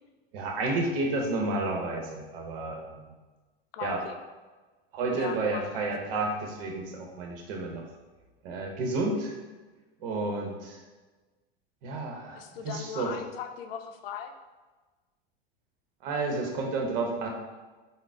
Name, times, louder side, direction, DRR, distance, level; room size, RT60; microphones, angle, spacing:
voice 1, 0.3-3.0 3.8-4.0 4.9-7.8 8.4-9.3 10.0-10.8 11.8-13.2 16.0-17.3, right 2 dB, 70° right, 1 dB, 0.8 m, -31 dB
voice 2, 3.7-4.1 5.1-6.2 12.3-14.3, left 8 dB, 75° left, 6 dB, 0.5 m, -39 dB
3.8 x 2.0 x 3.6 m, 1.3 s
hypercardioid pair, 90°, 29 cm